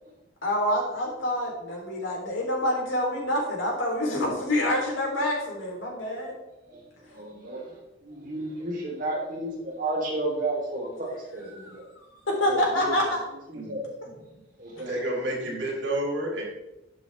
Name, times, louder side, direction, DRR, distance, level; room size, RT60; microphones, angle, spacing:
voice 1, 0.4-6.3 11.4-13.2, left 1 dB, 85° left, -2 dB, 3.6 m, -27 dB
voice 2, 7.1-7.7 8.0-11.8 12.4-12.6 12.9-13.0 13.5-13.9 14.6-14.9, right 2 dB, 45° right, -3 dB, 3.6 m, -32 dB
voice 3, 14.9-16.4, right 1 dB, 70° right, -3 dB, 4.1 m, -30 dB
11.5 x 7.9 x 3.5 m, 0.95 s
head